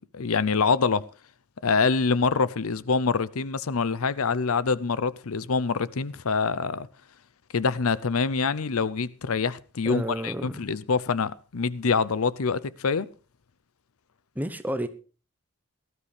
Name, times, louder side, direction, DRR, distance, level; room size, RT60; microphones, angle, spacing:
voice 1, 0.1-1.1 1.6-6.9 7.5-13.1, left 5 dB, 75° left, 0.6 m, -25 dB
voice 2, 9.8-10.5 14.3-14.9, equal, 5° right, 0.9 m, -30 dB
18.0 x 12.5 x 3.3 m
head